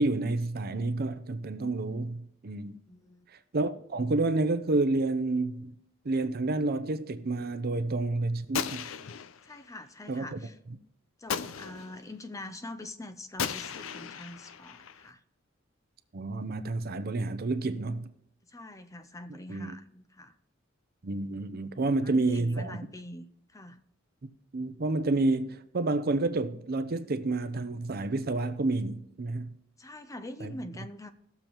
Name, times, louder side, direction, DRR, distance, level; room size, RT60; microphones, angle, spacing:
voice 1, 0.0-2.8 3.5-5.7 6.0-8.9 10.1-10.4 16.1-18.1 19.5-19.8 21.0-22.8 24.5-29.5 30.4-30.5, right 2 dB, 50° right, 0.6 m, -29 dB
voice 2, 2.9-3.3 9.4-10.6 11.2-15.2 18.4-20.3 22.0-23.8 29.8-31.1, left 1 dB, 15° left, 0.6 m, -44 dB
Gunshot gunfire, 8.5-9.7 11.3-12.1 13.4-15.1, left 7 dB, 85° left, 0.5 m, -36 dB
18.5 x 6.9 x 3.0 m
head